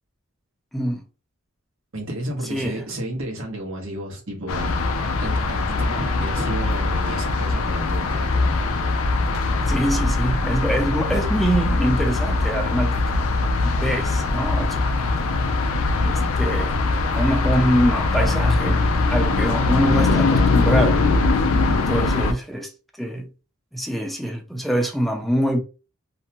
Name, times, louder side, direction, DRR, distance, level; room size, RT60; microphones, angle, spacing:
voice 1, 0.7-1.0 2.5-2.8 9.6-13.0 13.6-15.0 16.0-16.7 17.1-18.9 19.1-21.0 21.9-22.7 23.0-23.3 23.7-25.6, equal, ahead, 0.4 m, -24 dB
voice 2, 1.9-4.8 5.1-8.6 21.5-21.9, right 1 dB, 75° right, 1.0 m, -32 dB
sound 1, 4.5-22.3, left 3 dB, 85° left, 0.4 m, -21 dB
2.6 x 2.1 x 2.8 m
head